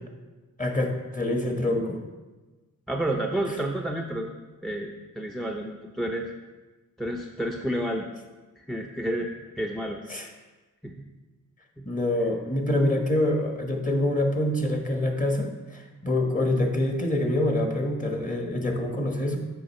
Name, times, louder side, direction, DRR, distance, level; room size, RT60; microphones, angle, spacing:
voice 1, 0.6-2.0 10.1-10.3 11.8-19.4, left 1 dB, 25° left, 2 dB, 1.2 m, -26 dB
voice 2, 2.9-4.3 4.6-6.3 7.0-8.1 8.6-9.3 9.6-10.0 10.8-11.1 11.8-11.9, right 1 dB, ahead, 2 dB, 0.5 m, -30 dB
7.8 x 5.4 x 4.2 m, 1.2 s
wide cardioid pair, 85°, 32 cm